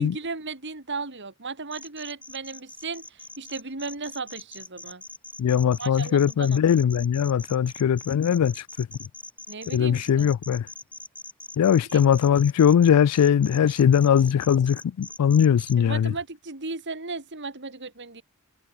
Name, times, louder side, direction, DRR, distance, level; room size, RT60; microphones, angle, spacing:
voice 1, 0.0-5.0 5.8-6.6 9.5-10.3 11.9-12.0 15.8-18.2, right 3 dB, 55° right, 2.9 m, -35 dB
sound 1, 1.7-15.7, left 2 dB, 5° left, 3.5 m, -42 dB
voice 2, 5.4-8.9 9.7-10.6 11.6-16.1, left 8 dB, 85° left, 0.3 m, -20 dB
head